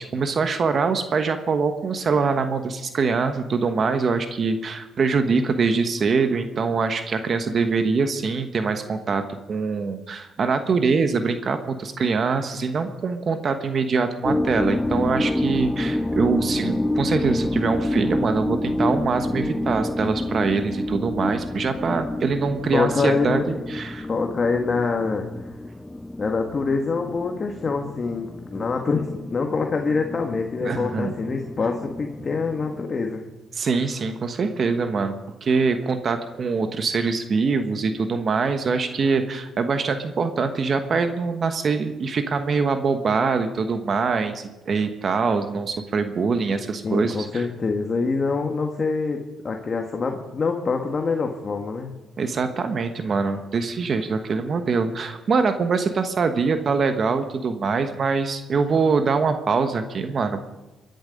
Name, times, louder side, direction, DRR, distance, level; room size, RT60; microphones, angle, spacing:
voice 1, 0.0-9.2 9.5-24.1 30.6-31.1 33.5-35.1 35.4-47.5 52.2-60.5, right 4 dB, 50° right, 8 dB, 1.2 m, -24 dB
sound 1, 14.2-32.8, left 1 dB, 10° left, 0.5 m, -28 dB
voice 2, 22.7-23.6 24.1-25.3 26.2-33.2 46.8-51.9, left 4 dB, 40° left, 3 dB, 1.7 m, -25 dB
23.5 x 10.5 x 5.3 m, 1.1 s
cardioid pair, 90°, 0 cm